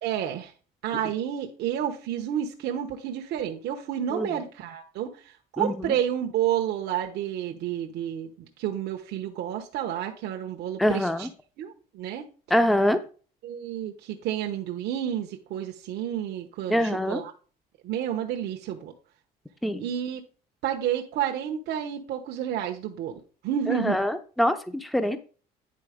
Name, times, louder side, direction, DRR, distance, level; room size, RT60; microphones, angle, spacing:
voice 1, 0.0-0.5 0.8-11.3 11.6-12.2 13.4-17.3 17.8-18.9 19.8-20.2 20.6-24.0 25.1-25.2, right 10 dB, 75° right, 2 dB, 1.0 m, -30 dB
voice 2, 5.6-6.0 10.8-11.3 12.5-13.0 16.7-17.2 19.6-19.9 23.7-25.2, equal, ahead, 10 dB, 0.7 m, -24 dB
9.8 x 3.9 x 5.1 m, 0.38 s
cardioid pair, 110°, 17 cm